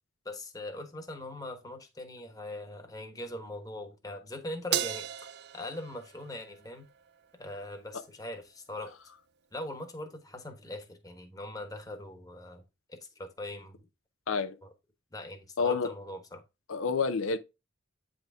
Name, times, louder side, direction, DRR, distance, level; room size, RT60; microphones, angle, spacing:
voice 1, 0.2-6.9 7.4-8.9 9.5-12.6 12.9-13.9 14.6-14.7 15.1-16.4, left 1 dB, 20° left, 1.2 m, -41 dB
Crash cymbal, 4.7-7.2, right 10 dB, 55° right, 0.4 m, -36 dB
voice 2, 15.6-15.9 16.7-17.4, left 5 dB, 80° left, 0.7 m, -28 dB
9.0 x 3.9 x 3.5 m
head